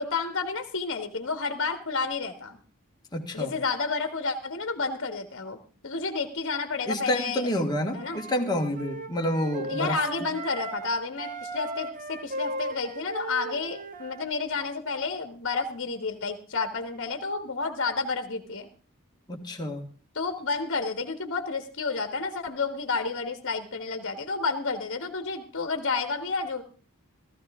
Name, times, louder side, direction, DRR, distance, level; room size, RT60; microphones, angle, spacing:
voice 1, 0.0-2.6 3.3-7.5 7.9-8.2 9.7-18.7 20.1-26.6, left 4 dB, 55° left, 7 dB, 1.5 m, -30 dB
voice 2, 3.1-3.5 6.9-10.0 19.3-19.8, left 1 dB, 20° left, 1 dB, 1.8 m, -28 dB
Wind instrument woodwind instrument, 7.9-10.9 11.2-14.3, right 1 dB, 35° right, 1.2 m, -37 dB
15.0 x 15.0 x 3.6 m, 0.39 s
head